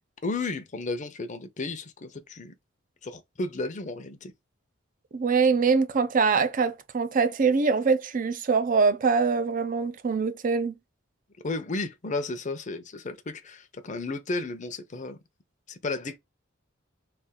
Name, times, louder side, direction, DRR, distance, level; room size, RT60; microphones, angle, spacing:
voice 1, 0.2-2.5 3.0-4.3 11.4-15.2 15.7-16.2, left 3 dB, 40° left, 0.7 m, -33 dB
voice 2, 5.1-10.7, right 5 dB, 45° right, 0.5 m, -23 dB
3.4 x 2.4 x 3.6 m
head